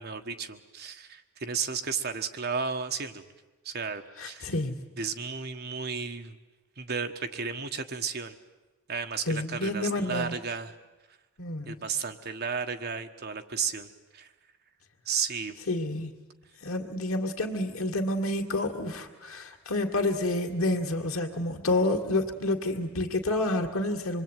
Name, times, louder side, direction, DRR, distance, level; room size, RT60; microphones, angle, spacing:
voice 1, 0.0-3.2 3.6-4.5 5.0-6.3 6.8-8.4 8.9-10.8 11.7-14.3 15.0-15.6, right 5 dB, 50° right, 6 dB, 1.5 m, -33 dB
voice 2, 4.2-4.8 9.3-10.4 11.4-11.7 15.7-16.1 16.6-24.2, left 2 dB, 85° left, 4 dB, 2.3 m, -29 dB
26.5 x 22.5 x 9.3 m, 1.1 s
head